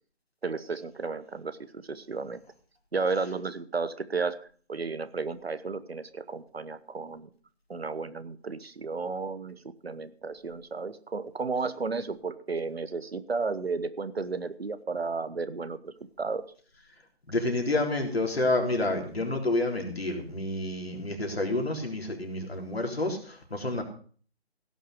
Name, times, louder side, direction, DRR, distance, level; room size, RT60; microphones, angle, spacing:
voice 1, 0.4-2.4 2.9-7.3 7.7-16.4, right 4 dB, 70° right, 14 dB, 1.2 m, -33 dB
voice 2, 17.3-23.8, left 2 dB, 70° left, 3 dB, 3.8 m, -29 dB
16.5 x 6.5 x 6.6 m, 0.44 s
figure-of-eight pair, 155°, 32 cm